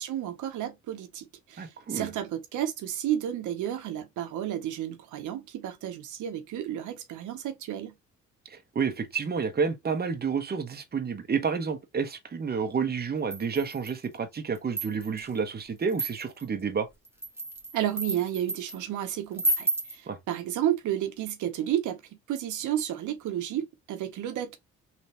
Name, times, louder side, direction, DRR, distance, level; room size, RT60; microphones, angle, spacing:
voice 1, 0.0-7.9 17.7-22.0 22.3-24.6, right 11 dB, 80° right, 0.9 m, -32 dB
voice 2, 1.6-2.1 8.5-16.9 20.1-20.2, right 5 dB, 30° right, 1.0 m, -30 dB
sound 1, 13.3-14.0 14.5-15.2 15.9-16.4 17.0-18.8 19.4-20.0, right 2 dB, 10° right, 1.3 m, -31 dB
3.4 x 2.9 x 4.1 m
cardioid pair, 90°, 30 cm